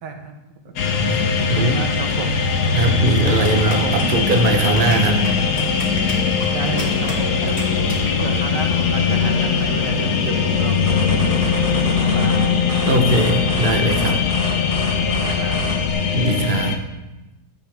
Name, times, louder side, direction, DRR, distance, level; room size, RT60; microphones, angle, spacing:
voice 1, 0.0-0.8 1.4-2.4 3.0-4.1 6.5-7.6 8.2-11.0 11.4-12.5 15.2-15.7, right 4 dB, 85° right, 5 dB, 1.8 m, -31 dB
sound 1, 0.8-16.8, left 5 dB, 75° left, 1.4 m, -20 dB
voice 2, 0.8-1.8 2.7-5.2 12.9-14.2 16.1-16.8, right 2 dB, 35° right, 5 dB, 0.9 m, -20 dB
sound 2, 3.4-8.7, left 1 dB, 40° left, 2.4 m, -34 dB
sound 3, 10.9-15.9, equal, 20° right, 1.4 m, -30 dB
13.0 x 8.2 x 3.5 m, 1.0 s
omnidirectional pair, 1.8 m